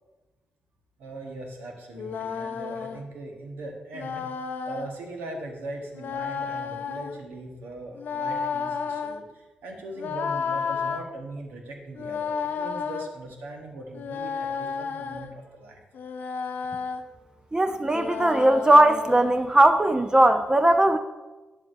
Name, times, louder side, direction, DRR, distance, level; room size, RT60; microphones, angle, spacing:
voice 1, 1.0-4.2 4.7-15.8, right 2 dB, 80° right, 1 dB, 1.1 m, -40 dB
sound 1, 1.9-3.0 3.9-4.9 5.9-7.2 8.0-9.2 10.0-11.0 11.9-13.1 13.9-15.3 15.9-17.0 17.9-19.3, left 6 dB, 70° left, 0.5 m, -32 dB
voice 2, 17.5-21.0, right 1 dB, 25° right, 8 dB, 0.5 m, -19 dB
9.4 x 7.5 x 2.6 m, 1.2 s
supercardioid pair, 40°, 3 cm